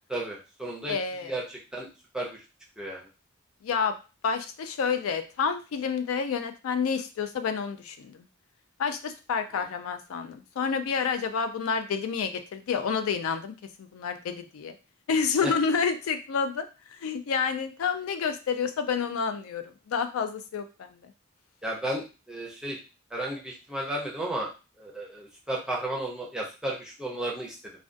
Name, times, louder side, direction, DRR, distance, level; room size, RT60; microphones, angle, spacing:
voice 1, 0.1-2.4 2.8-3.1 9.5-9.6 15.4-15.5 21.6-22.8 23.1-24.5 24.8-27.7, right 1 dB, 5° right, -3 dB, 0.5 m, -34 dB
voice 2, 0.9-1.3 3.6-3.9 4.2-8.3 8.8-14.7 15.1-16.7 16.9-21.1, left 6 dB, 80° left, 8 dB, 0.3 m, -29 dB
2.4 x 2.2 x 2.5 m, 0.31 s
head